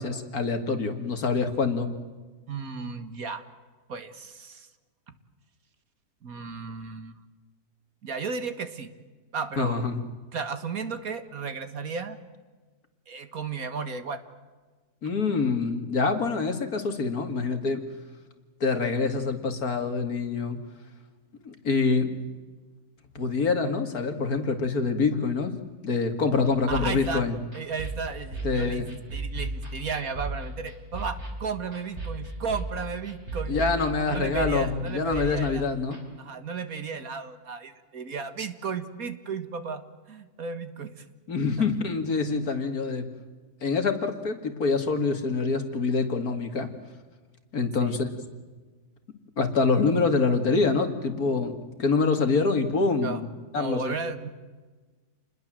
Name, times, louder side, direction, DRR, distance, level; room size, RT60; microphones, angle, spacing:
voice 1, 0.0-1.9 9.6-10.1 15.0-17.8 18.6-20.6 21.4-22.2 23.1-25.6 25.8-27.3 28.4-28.9 33.5-36.0 41.3-43.1 43.6-46.7 47.5-48.1 49.4-53.3 53.5-53.9, left 4 dB, 65° left, 7 dB, 2.7 m, -25 dB
voice 2, 2.5-3.4 3.9-4.7 6.2-7.1 8.0-8.9 9.3-9.8 10.3-12.2 13.1-14.2 26.7-27.2 27.5-28.9 29.1-33.6 34.1-35.7 36.2-39.8 40.1-41.0 41.6-41.7 47.8-48.0 53.0-53.2 53.6-54.3, right 5 dB, 60° right, 10 dB, 2.0 m, -34 dB
sound 1, 26.4-36.0, right 2 dB, 40° right, 5.0 m, -36 dB
29.0 x 21.0 x 7.6 m, 1.3 s
omnidirectional pair, 1.7 m